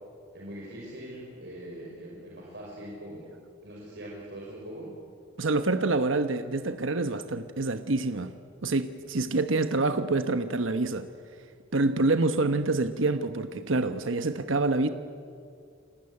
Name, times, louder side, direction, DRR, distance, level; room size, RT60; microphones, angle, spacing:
voice 1, 0.3-3.3 3.6-4.9, right 1 dB, 60° right, -4 dB, 5.6 m, -42 dB
voice 2, 5.4-8.3 8.6-11.1 11.7-14.9, right 2 dB, 75° right, 9 dB, 1.1 m, -26 dB
29.0 x 19.5 x 9.8 m, 2.3 s
head